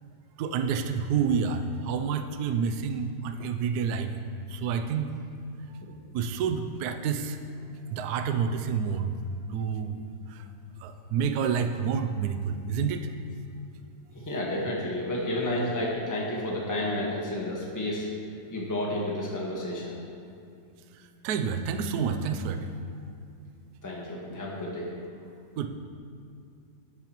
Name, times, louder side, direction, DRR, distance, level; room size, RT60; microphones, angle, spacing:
voice 1, 0.4-4.1 4.5-5.2 6.1-7.4 7.9-9.1 9.5-10.0 10.3-10.4 10.8-13.1 21.2-22.7 25.6-25.7, right 6 dB, 70° right, 8 dB, 1.0 m, -28 dB
voice 2, 14.1-18.1 18.5-20.0 23.8-24.9, left 1 dB, 10° left, -4 dB, 1.2 m, -31 dB
11.0 x 9.8 x 3.0 m, 2.4 s
omnidirectional pair, 2.2 m